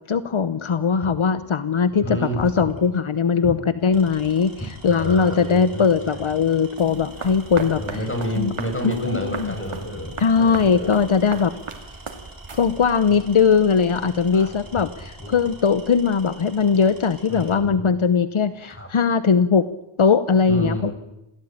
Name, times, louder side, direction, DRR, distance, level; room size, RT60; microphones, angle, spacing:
voice 1, 0.1-7.8 8.4-8.5 8.8-9.5 10.2-11.5 12.5-19.7 20.0-20.9, left 6 dB, 75° left, 13 dB, 1.0 m, -20 dB
voice 2, 2.0-2.7 3.4-3.5 4.9-6.2 7.8-10.9 13.0-13.3 14.3-14.9 15.2-15.3 17.3-17.8 18.7-18.9 20.5-20.9, equal, 25° left, 5 dB, 6.3 m, -30 dB
Tools, 2.7-3.0 3.8-17.6, right 2 dB, 45° right, 5.8 m, -45 dB
sound 1, 6.8-13.1, right 4 dB, 85° right, 2.8 m, -37 dB
27.5 x 17.5 x 8.9 m, 0.92 s
wide cardioid pair, 75°, 49 cm